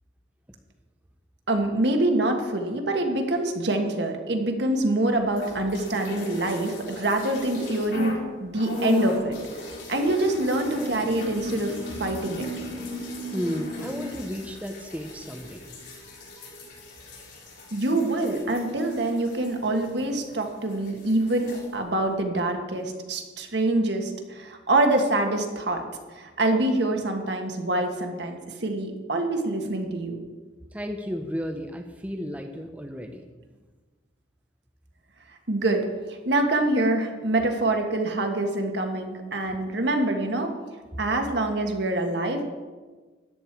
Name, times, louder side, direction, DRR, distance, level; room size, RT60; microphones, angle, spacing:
voice 1, 1.5-12.5 17.7-25.8 26.1-30.2 35.5-35.8 36.1-40.5 41.0-42.4, right 2 dB, 60° right, 4 dB, 1.6 m, -25 dB
sound 1, 5.3-8.2 8.5-20.4 20.7-21.7, left 1 dB, 65° left, 4.2 m, -36 dB
voice 2, 13.3-15.6 16.1-16.5 30.7-33.2, equal, 10° right, 4 dB, 0.6 m, -33 dB
13.5 x 10.5 x 4.6 m, 1.3 s
head